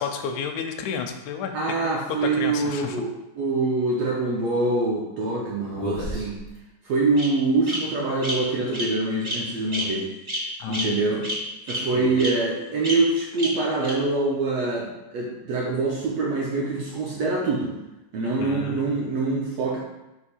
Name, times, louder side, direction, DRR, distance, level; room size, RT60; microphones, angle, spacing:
voice 1, 0.0-1.5 1.8-1.9 2.4-3.0 10.6-10.9 11.9-12.1 18.4-18.8, left 6 dB, 80° left, 5 dB, 1.7 m, -31 dB
voice 2, 1.5-6.4 6.8-10.1 10.7-11.3 11.7-17.7 18.1-19.8, right 3 dB, 80° right, -4 dB, 1.5 m, -25 dB
Bird vocalization bird call bird song, 5.7-6.5 7.2-7.3 7.7-7.8 8.2-8.3 8.7-8.9 9.2-9.4 9.7-9.8 10.3-10.4 10.7-10.8 11.2-11.3 11.7-11.8 12.2-12.3 12.8-12.9 13.4-13.5 13.8-13.9, equal, 60° right, 0.5 m, -29 dB
6.3 x 2.8 x 5.6 m, 0.97 s
omnidirectional pair, 4.0 m